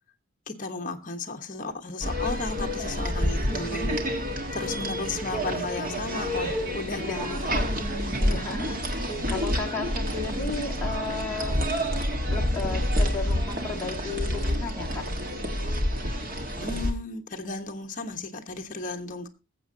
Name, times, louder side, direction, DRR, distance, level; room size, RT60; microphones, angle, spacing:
voice 1, 0.5-4.0 4.5-7.5 16.6-19.3, left 3 dB, 40° left, 1.2 m, -34 dB
sound 1, 2.0-16.9, equal, 40° right, 1.6 m, -28 dB
voice 2, 6.9-7.5 8.2-11.6 12.3-15.1, left 3 dB, 10° left, 2.4 m, -34 dB
20.5 x 7.6 x 2.8 m
head